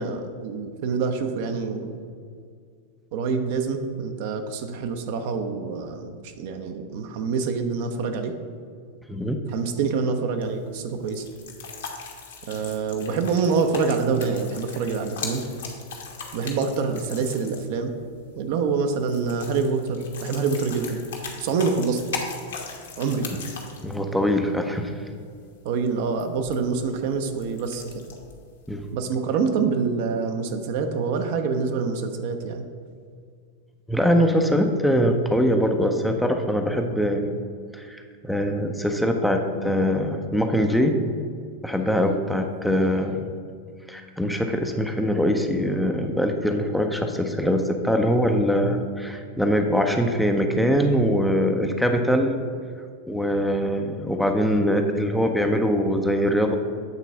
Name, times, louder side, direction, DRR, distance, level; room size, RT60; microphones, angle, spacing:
voice 1, 0.0-2.0 3.1-8.3 9.5-11.2 12.5-15.4 16.3-17.9 18.4-21.0 21.4-22.0 23.0-23.3 25.6-27.8 28.9-32.6, right 5 dB, 50° right, 6 dB, 0.7 m, -26 dB
sound 1, 10.4-28.9, left 5 dB, 60° left, 1.2 m, -40 dB
voice 2, 23.8-24.9 28.7-28.9 33.9-37.4 37.7-41.0 41.6-43.3 43.9-52.3 53.1-56.6, equal, ahead, 4 dB, 0.5 m, -22 dB
8.2 x 4.0 x 5.5 m, 2.1 s
figure-of-eight pair, 90°, 0 cm